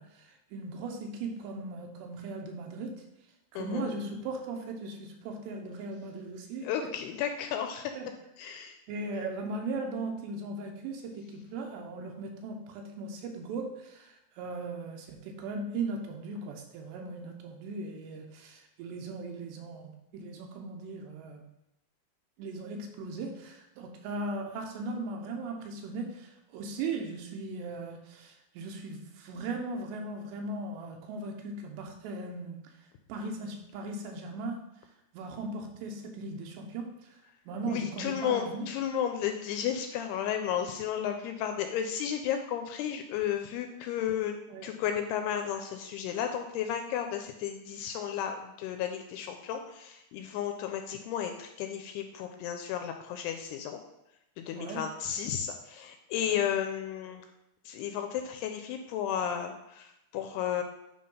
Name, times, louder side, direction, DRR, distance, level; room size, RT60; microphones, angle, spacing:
voice 1, 0.0-3.0 3.5-6.9 8.0-8.1 8.9-21.4 22.4-32.6 33.1-34.6 35.1-37.2 37.5-38.7 44.5-44.7 54.6-54.8 56.3-56.4, right 3 dB, 80° right, 2 dB, 3.1 m, -38 dB
voice 2, 3.6-3.9 6.6-7.9 8.4-8.8 37.7-44.3 44.6-53.8 54.4-57.3 57.7-60.6, left 9 dB, 85° left, 5 dB, 2.4 m, -33 dB
9.6 x 3.5 x 5.5 m, 0.88 s
omnidirectional pair, 5.0 m